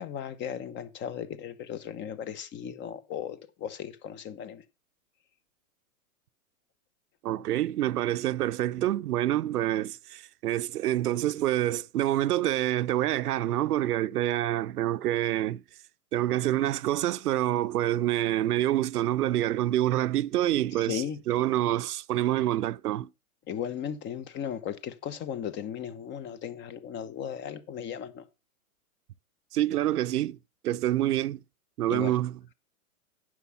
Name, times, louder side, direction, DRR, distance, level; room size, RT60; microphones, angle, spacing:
voice 1, 0.0-4.6 20.7-21.2 23.5-28.3 31.9-32.2, left 9 dB, 25° left, 1.0 m, -36 dB
voice 2, 7.2-15.6 16.1-23.1 29.5-30.4 30.6-31.4 31.8-32.4, right 13 dB, 90° right, 0.6 m, -27 dB
9.6 x 6.4 x 5.6 m
hypercardioid pair, 135°, 44 cm